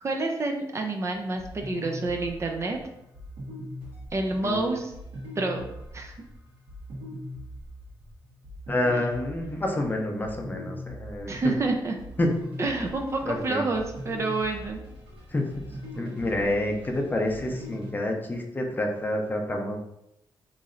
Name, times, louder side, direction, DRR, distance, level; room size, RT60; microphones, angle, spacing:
voice 1, 0.0-2.8 4.1-4.9 5.4-5.7 5.9-6.1 11.3-12.0 12.6-14.8, right 2 dB, 35° right, 3 dB, 0.4 m, -28 dB
sound 1, 1.1-17.9, equal, 90° right, 1.4 m, -41 dB
voice 2, 4.4-4.8 8.7-11.5 12.2-12.3 13.2-13.7 15.3-15.5 15.9-19.8, left 1 dB, 20° left, 2 dB, 0.6 m, -28 dB
3.1 x 2.7 x 3.7 m, 0.83 s
cardioid pair, 115°, 9 cm